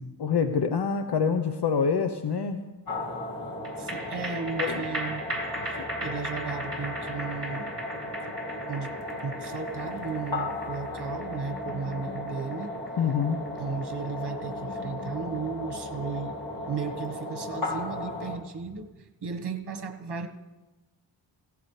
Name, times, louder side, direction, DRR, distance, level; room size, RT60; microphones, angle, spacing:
voice 1, 0.2-2.6 4.6-4.8 13.0-13.4, left 6 dB, 60° left, 7 dB, 0.9 m, -26 dB
sound 1, 2.9-18.4, left 2 dB, 45° left, 2.2 m, -35 dB
sound 2, 3.6-16.3 16.6-16.7, equal, 30° right, 6.1 m, -38 dB
voice 2, 3.8-5.3 5.6-7.7 8.7-9.0 9.2-12.7 13.6-16.4 16.6-20.3, right 5 dB, 55° right, 5 dB, 1.5 m, -35 dB
17.0 x 17.0 x 3.3 m, 1.2 s
wide cardioid pair, 90°, 46 cm